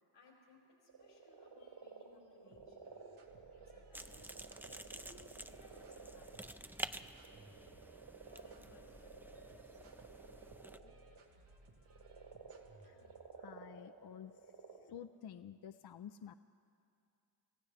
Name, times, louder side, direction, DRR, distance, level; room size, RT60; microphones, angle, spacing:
voice 1, 0.1-2.9 3.5-4.3 4.7-6.8 8.2-9.2, left 2 dB, 85° left, -4 dB, 5.0 m, -65 dB
sound 1, 0.9-11.3 11.7-14.8, right 4 dB, 70° right, 2.3 m, -55 dB
sound 2, 2.5-13.3, right 1 dB, 90° right, 1.4 m, -63 dB
sound 3, 3.9-10.8, right 1 dB, 5° right, 0.4 m, -50 dB
voice 2, 13.4-14.3 14.7-16.3, left 9 dB, 55° left, 10 dB, 0.5 m, -51 dB
26.5 x 15.5 x 3.3 m, 2.5 s
supercardioid pair, 40°, 48 cm